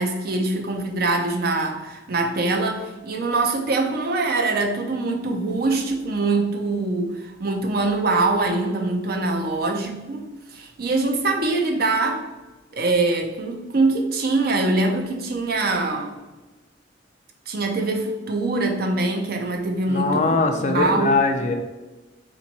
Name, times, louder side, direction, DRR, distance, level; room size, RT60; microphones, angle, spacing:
voice 1, 0.0-12.2 12.7-16.2 17.5-21.2, right 3 dB, 55° right, 3 dB, 0.6 m, -23 dB
voice 2, 19.9-21.6, left 3 dB, 40° left, 5 dB, 0.5 m, -21 dB
3.5 x 3.0 x 4.0 m, 1.1 s
head